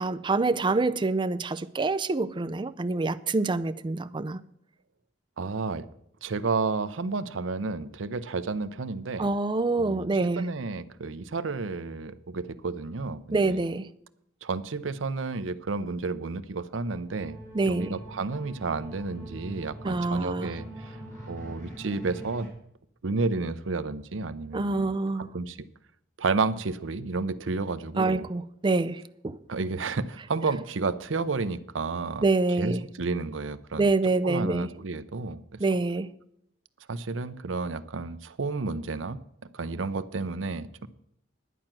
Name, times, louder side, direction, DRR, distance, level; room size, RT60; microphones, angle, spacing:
voice 1, 0.0-4.4 9.2-10.5 13.3-13.9 17.5-17.9 19.8-20.5 24.5-25.3 28.0-29.4 32.2-32.8 33.8-34.7 35.6-36.1, right 3 dB, 25° right, 0.4 m, -26 dB
voice 2, 5.4-5.9 6.2-9.3 9.8-10.1 10.4-13.6 14.4-21.0 21.3-22.5 23.0-25.6 26.2-28.3 29.5-32.3 32.6-33.9 34.2-35.6 36.9-39.2 39.5-40.9, right 3 dB, 80° right, 0.7 m, -31 dB
sound 1, 16.8-22.5, right 1 dB, 15° left, 4.1 m, -43 dB
11.0 x 8.9 x 6.0 m
head